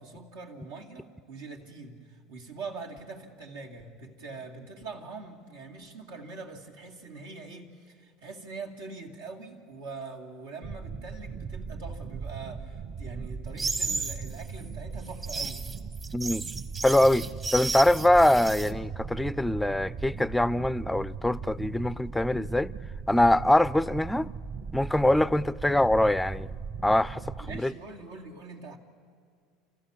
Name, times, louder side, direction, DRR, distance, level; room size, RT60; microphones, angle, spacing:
voice 1, 0.0-15.7 27.4-28.8, right 3 dB, 85° right, 2.4 m, -43 dB
sound 1, 10.6-27.6, right 5 dB, 45° right, 1.2 m, -39 dB
sound 2, 13.6-14.2 15.1-18.7, right 3 dB, 25° right, 1.1 m, -33 dB
voice 2, 16.1-16.5 16.8-22.7 23.1-24.3 24.7-26.5 26.8-27.7, left 1 dB, 5° left, 0.4 m, -23 dB
29.0 x 14.0 x 7.2 m
hypercardioid pair, 85°, 0 cm